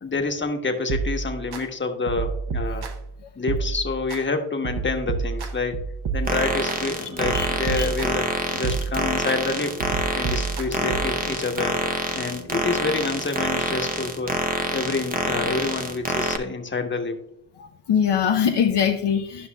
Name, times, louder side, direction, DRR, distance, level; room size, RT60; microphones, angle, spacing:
voice 1, 0.0-2.8 3.4-5.8 6.1-8.3 8.5-9.7 10.1-11.8 12.1-14.4 14.7-17.2, left 3 dB, 25° left, 4 dB, 1.2 m, -27 dB
sound 1, 0.9-1.6 2.1-3.1 3.5-4.2 4.6-6.8 7.2-8.3 8.6-9.4 9.8-11.2, right 5 dB, 55° right, 1.0 m, -29 dB
sound 2, 6.3-16.4, right 2 dB, 20° right, 0.8 m, -27 dB
voice 2, 17.6-19.5, left 8 dB, 60° left, 2 dB, 0.8 m, -22 dB
12.0 x 5.5 x 2.3 m, 0.77 s
cardioid pair, 65°, 46 cm